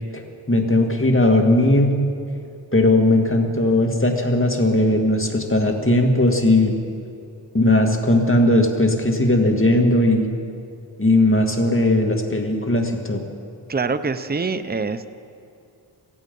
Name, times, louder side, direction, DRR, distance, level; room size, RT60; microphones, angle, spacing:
voice 1, 0.5-2.0 2.7-6.7 7.5-10.3 11.0-13.2, left 1 dB, 30° left, 2 dB, 2.0 m, -18 dB
voice 2, 13.7-15.1, right 4 dB, 20° right, 12 dB, 0.6 m, -25 dB
17.5 x 15.0 x 5.4 m, 2.5 s
wide cardioid pair, 45°, 44 cm